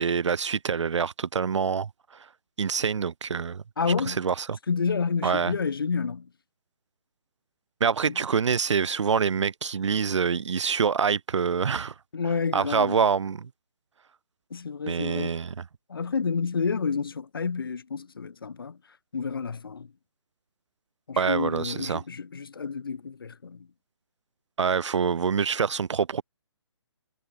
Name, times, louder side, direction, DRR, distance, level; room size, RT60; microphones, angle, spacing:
voice 1, 0.0-1.9 2.6-3.6 4.1-4.6 5.2-5.5 7.8-11.9 12.5-13.5 14.9-15.6 21.2-22.0 24.6-26.2, right 6 dB, 80° right, 0.6 m, -25 dB
voice 2, 3.8-4.2 4.7-6.3 8.1-8.2 12.1-13.0 14.5-15.4 15.9-18.8 19.1-19.9 21.1-23.7, left 5 dB, 50° left, 2.2 m, -29 dB
hypercardioid pair, 180°, 15 cm